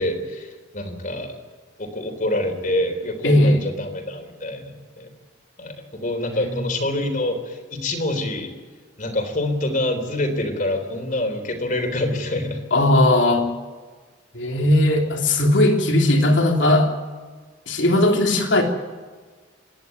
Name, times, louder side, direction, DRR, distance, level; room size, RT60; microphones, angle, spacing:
voice 1, 0.0-1.4 1.8-5.1 5.6-8.5 9.0-12.6, left 1 dB, 45° left, 6 dB, 3.7 m, -26 dB
voice 2, 3.2-3.6 6.3-6.5 12.7-13.5 14.3-16.9 17.7-18.6, left 1 dB, 70° left, 2 dB, 3.3 m, -18 dB
27.0 x 11.0 x 9.5 m, 1.4 s
head